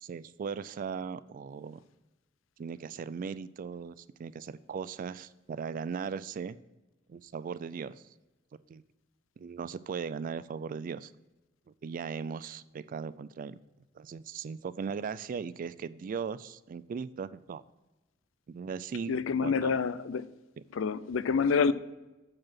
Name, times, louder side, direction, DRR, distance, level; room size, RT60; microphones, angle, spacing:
voice 1, 0.0-1.8 2.6-6.6 7.1-8.0 8.7-8.8 9.4-11.1 11.8-13.6 14.0-17.6 18.5-19.2 19.4-19.7, right 6 dB, 45° right, 0.3 m, -38 dB
voice 2, 19.1-20.3 20.7-21.7, left 5 dB, 75° left, 0.4 m, -27 dB
7.4 x 4.7 x 5.8 m
head